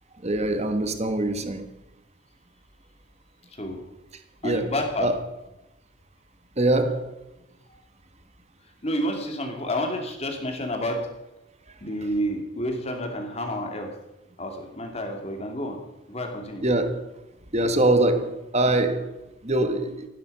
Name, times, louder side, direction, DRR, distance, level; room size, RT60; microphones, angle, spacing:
voice 1, 0.2-1.7 4.4-4.7 5.0-5.2 6.6-7.2 16.6-17.1 17.5-20.1, right 2 dB, 30° right, 1.4 m, -23 dB
voice 2, 3.5-3.8 4.4-5.1 7.7-7.8 8.8-11.0 11.8-13.9 14.4-15.8 16.1-16.6, equal, 30° left, 2.7 m, -29 dB
15.0 x 12.5 x 5.6 m
head